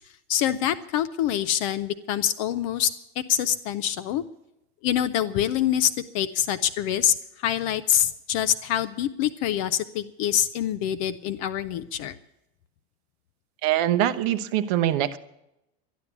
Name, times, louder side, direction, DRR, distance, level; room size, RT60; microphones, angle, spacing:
voice 1, 0.3-2.9 3.2-4.2 4.8-12.2, left 10 dB, 30° left, 13 dB, 0.4 m, -25 dB
voice 2, 13.6-15.2, right 12 dB, 40° right, 13 dB, 0.7 m, -23 dB
12.5 x 11.0 x 8.0 m, 0.85 s
supercardioid pair, 180°, 32 cm